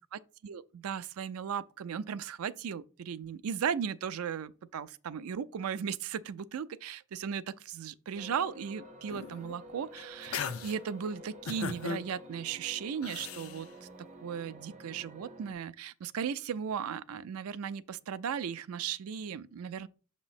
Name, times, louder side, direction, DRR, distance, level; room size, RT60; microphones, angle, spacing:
voice 1, 0.0-19.9, right 7 dB, 90° right, 0.4 m, -37 dB
sound 1, 8.1-15.5, equal, 35° right, 0.8 m, -50 dB
sound 2, 9.1-9.5 10.0-10.8 11.5-12.0 13.0-13.6, left 6 dB, 75° left, 0.5 m, -37 dB
6.1 x 3.0 x 5.7 m
head